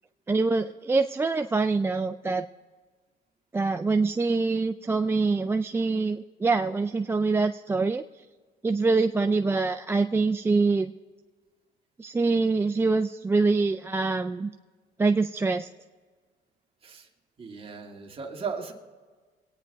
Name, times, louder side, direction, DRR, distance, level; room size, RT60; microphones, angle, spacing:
voice 1, 0.3-2.5 3.5-8.0 8.6-10.9 12.0-14.5 15.0-15.7, right 3 dB, 15° right, 7 dB, 0.4 m, -25 dB
voice 2, 17.4-18.7, right 5 dB, 35° right, 1 dB, 2.1 m, -36 dB
23.0 x 9.4 x 3.5 m, 1.5 s
cardioid pair, 110°, 17 cm